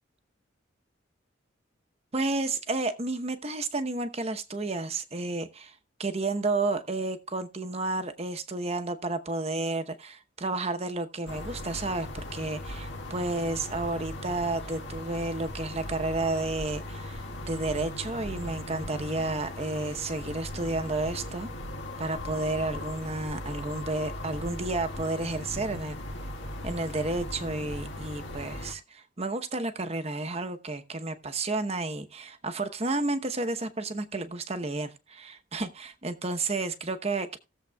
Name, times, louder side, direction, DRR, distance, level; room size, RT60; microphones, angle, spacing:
voice 1, 2.1-21.5 22.0-26.0 26.6-37.4, right 2 dB, 30° right, 0.9 m, -31 dB
sound 1, 11.3-28.7, left 1 dB, 65° left, 1.8 m, -38 dB
18.5 x 7.3 x 2.3 m
head